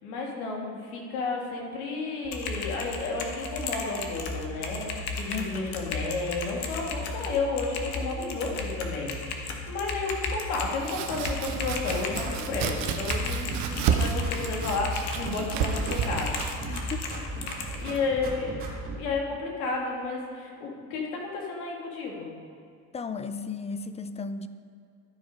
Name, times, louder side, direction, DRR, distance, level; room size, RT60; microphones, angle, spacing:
voice 1, 0.0-16.4 17.1-17.2 17.7-18.5 19.0-22.3, left 3 dB, 85° left, -1 dB, 1.9 m, -32 dB
Typing, 2.2-17.8, left 3 dB, 60° left, 1.4 m, -35 dB
voice 2, 5.3-6.0 16.7-17.1 17.9-18.1 22.9-24.5, left 4 dB, 15° left, 11 dB, 0.4 m, -36 dB
Domestic sounds home sounds, 10.6-18.3, right 6 dB, 70° right, 0.9 m, -32 dB
sound 1, 11.1-12.8 13.1-14.8 15.1-16.8 17.1-19.0, right 2 dB, 30° right, 2.3 m, -37 dB
12.5 x 4.8 x 5.2 m, 2.3 s
supercardioid pair, 90°, 43 cm